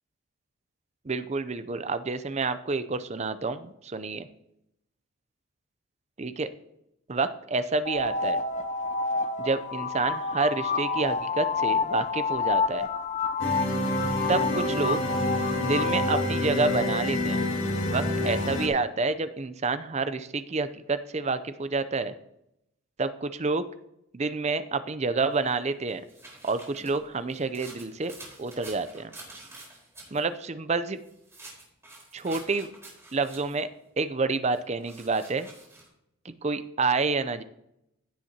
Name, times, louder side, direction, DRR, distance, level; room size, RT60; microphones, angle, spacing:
voice 1, 1.0-4.3 6.2-6.5 7.1-8.4 9.4-12.9 14.3-15.0 15.6-17.4 17.9-22.1 23.0-23.7 24.1-26.0 26.4-28.1 28.4-29.1 30.1-31.0 32.1-32.7 33.1-33.7 34.0-35.5 36.2-37.4, right 3 dB, 30° right, 12 dB, 0.5 m, -28 dB
sound 1, 7.8-16.3, left 4 dB, 35° left, 0.6 m, -29 dB
sound 2, 13.4-18.7, left 1 dB, 60° left, 2.1 m, -28 dB
sound 3, 25.4-30.2 31.0-33.7 34.5-35.9, right 2 dB, 15° right, 4.3 m, -48 dB
16.0 x 7.4 x 2.9 m, 0.81 s
head